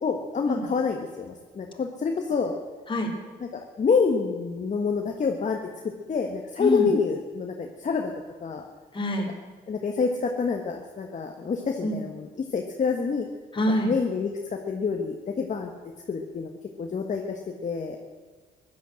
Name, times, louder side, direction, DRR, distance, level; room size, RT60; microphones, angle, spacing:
voice 1, 0.0-2.6 3.4-5.6 6.1-8.1 8.4-8.6 9.7-13.3 13.8-15.7 16.1-16.5 16.8-18.0, left 5 dB, 45° left, 2 dB, 1.6 m, -27 dB
voice 2, 8.9-9.3 11.8-12.0 13.5-13.9, left 1 dB, 30° left, 1 dB, 3.5 m, -25 dB
15.5 x 11.5 x 7.7 m, 1.4 s
cardioid pair, 80°, 18 cm